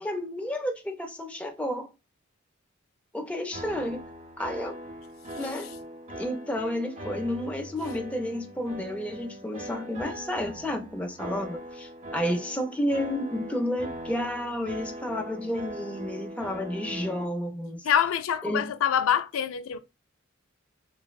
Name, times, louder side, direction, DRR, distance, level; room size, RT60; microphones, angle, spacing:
voice 1, 0.0-1.9 3.1-4.0 4.4-4.8 5.4-5.7 6.1-17.8 18.4-18.7, left 1 dB, 5° left, 0.4 m, -31 dB
sound 1, 3.5-17.2, equal, 35° right, 0.7 m, -41 dB
voice 2, 17.8-19.8, left 9 dB, 80° left, 0.3 m, -25 dB
4.0 x 2.1 x 2.3 m
head